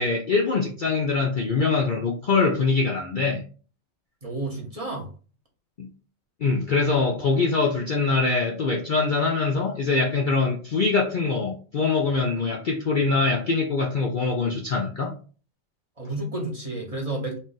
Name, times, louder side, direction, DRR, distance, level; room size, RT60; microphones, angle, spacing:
voice 1, 0.0-3.4 5.8-5.9 6.4-15.1, left 4 dB, 50° left, 0 dB, 0.6 m, -23 dB
voice 2, 4.2-5.1 16.0-17.4, right 2 dB, 30° right, -1 dB, 0.9 m, -31 dB
4.0 x 2.4 x 3.9 m, 0.38 s
omnidirectional pair, 1.4 m